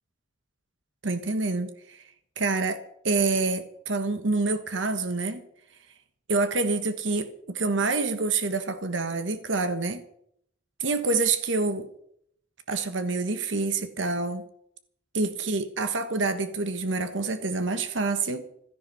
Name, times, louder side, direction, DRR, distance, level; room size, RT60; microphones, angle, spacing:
voice 1, 1.0-2.0 2.4-5.4 6.3-10.0 10.8-11.9 12.7-14.4 15.1-18.4, right 3 dB, 85° right, 9 dB, 1.4 m, -27 dB
16.5 x 13.0 x 5.7 m, 0.69 s
head